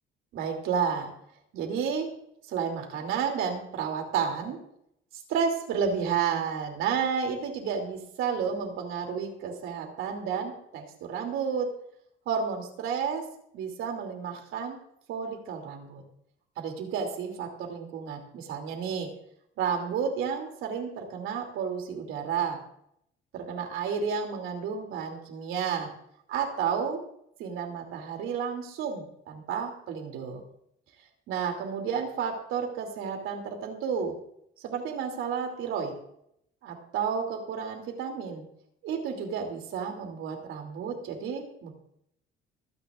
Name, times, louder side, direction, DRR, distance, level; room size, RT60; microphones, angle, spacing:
voice 1, 0.3-1.1 1.5-2.1 2.5-4.6 5.3-11.7 12.2-13.2 13.5-14.8 15.1-16.0 16.6-19.1 19.6-22.6 23.3-25.9 26.3-27.0 27.4-30.4 31.3-34.1 34.6-35.9 36.6-38.4 38.8-41.7, right 6 dB, 85° right, 3 dB, 3.0 m, -31 dB
26.0 x 9.8 x 2.6 m, 0.73 s
cardioid pair, 175°, 20 cm